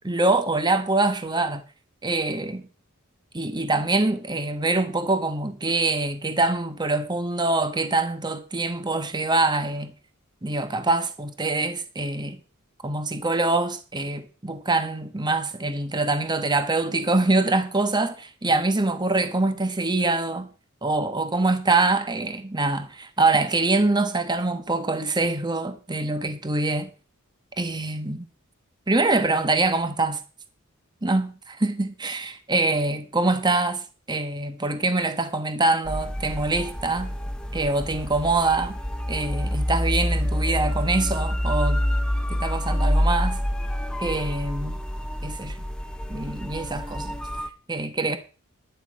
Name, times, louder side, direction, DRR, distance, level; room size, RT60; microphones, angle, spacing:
voice 1, 0.0-1.6 2.0-2.6 3.3-9.9 10.4-12.4 12.8-20.5 20.8-26.9 27.6-28.2 28.9-30.2 31.0-33.8 34.1-37.1 37.5-38.8 39.1-41.8 42.3-43.4 44.0-44.8 45.2-45.6 46.1-47.2 47.7-48.2, right 2 dB, 20° right, 1.2 m, -24 dB
sound 1, 35.8-47.5, equal, 5° left, 1.0 m, -27 dB
11.0 x 11.0 x 5.3 m
head